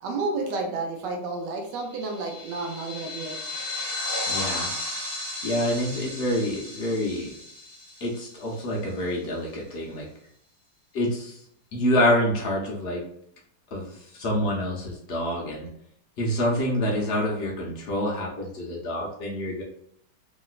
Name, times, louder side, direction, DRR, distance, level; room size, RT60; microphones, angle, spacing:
voice 1, 0.0-3.4, right 3 dB, 75° right, 1 dB, 1.3 m, -31 dB
sound 1, 1.9-8.7, left 2 dB, 15° right, 0.7 m, -34 dB
voice 2, 4.3-4.7 5.4-7.3 8.0-10.1 10.9-11.4 11.7-13.0 13.7-15.7 16.2-19.6, left 1 dB, 90° left, -3 dB, 0.5 m, -27 dB
3.0 x 2.9 x 2.4 m, 0.68 s
omnidirectional pair, 2.0 m